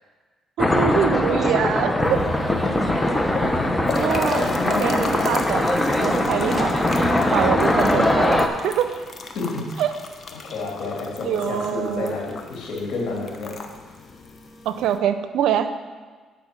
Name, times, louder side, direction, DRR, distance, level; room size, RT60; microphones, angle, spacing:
sound 1, 0.6-8.5, left 1 dB, 10° left, 0.9 m, -21 dB
voice 1, 0.6-2.3 4.0-5.7 6.0-6.8 7.3-8.9 9.8-9.9 11.2-12.1 14.6-15.7, right 9 dB, 75° right, 10 dB, 0.6 m, -24 dB
sound 2, 2.0-15.0, left 4 dB, 40° left, 1.0 m, -35 dB
voice 2, 3.3-3.7 4.6-5.0 7.6-7.7 9.3-9.7 10.3-13.6, left 3 dB, 70° left, -2 dB, 3.0 m, -30 dB
9.1 x 6.0 x 6.7 m, 1.4 s
cardioid pair, 90°, 0 cm